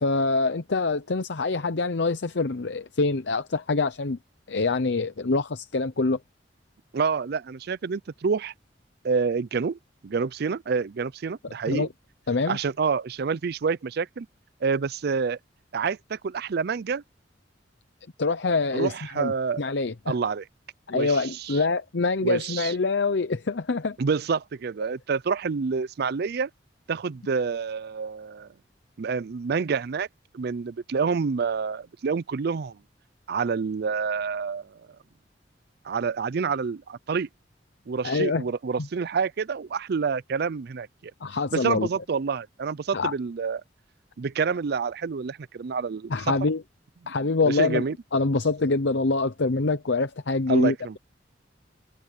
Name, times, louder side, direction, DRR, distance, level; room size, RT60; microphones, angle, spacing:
voice 1, 0.0-4.2 4.5-6.2 11.7-11.9 12.3-12.6 18.2-20.1 20.9-24.0 38.0-38.4 41.2-41.9 42.9-43.1 46.1-46.6 47.1-47.8 48.1-51.0, left 3 dB, 70° left, 0.8 m, -25 dB
voice 2, 6.9-8.5 9.0-11.9 12.5-14.3 14.6-15.4 15.7-17.0 18.7-19.6 20.1-20.4 20.9-21.6 22.2-22.7 24.0-26.5 26.9-28.5 29.0-30.1 30.3-32.8 33.3-34.8 35.8-37.3 37.9-40.9 41.5-43.6 44.2-46.1 47.0-47.1 47.4-47.9 50.5-51.0, right 5 dB, 60° right, 0.5 m, -28 dB
head